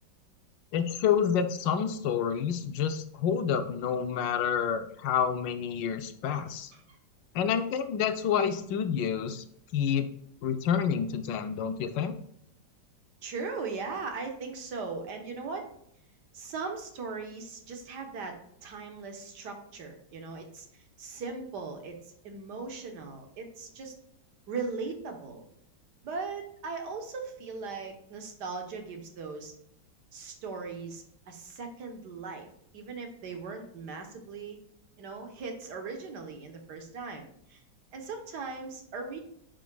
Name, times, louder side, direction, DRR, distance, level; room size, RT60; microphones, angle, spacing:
voice 1, 0.7-6.7 7.3-9.4 9.7-10.1 10.4-12.1, left 7 dB, 75° left, 9 dB, 1.3 m, -28 dB
voice 2, 13.2-15.7 16.3-22.0 22.2-24.0 24.5-25.5 26.0-29.5 30.1-34.6 35.0-37.6 37.9-39.2, right 4 dB, 65° right, 4 dB, 1.6 m, -39 dB
9.1 x 5.2 x 2.3 m, 0.72 s
omnidirectional pair, 2.0 m